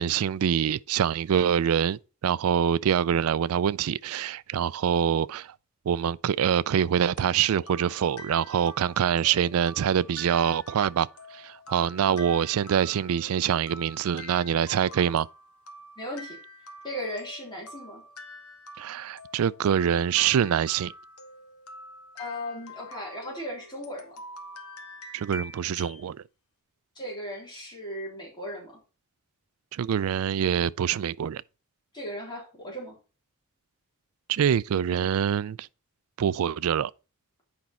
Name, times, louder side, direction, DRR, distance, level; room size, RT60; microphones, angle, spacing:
voice 1, 0.0-5.5 5.9-15.3 18.8-20.9 25.1-26.2 29.7-31.4 34.3-35.7 36.2-36.9, right 8 dB, 75° right, 0.3 m, -25 dB
sound 1, 7.2-26.0, left 1 dB, 80° left, 1.2 m, -46 dB
voice 2, 16.0-16.4 16.8-18.0 22.2-24.2 27.0-28.8 31.9-33.0, equal, 20° left, 3.6 m, -37 dB
8.4 x 5.3 x 4.2 m
head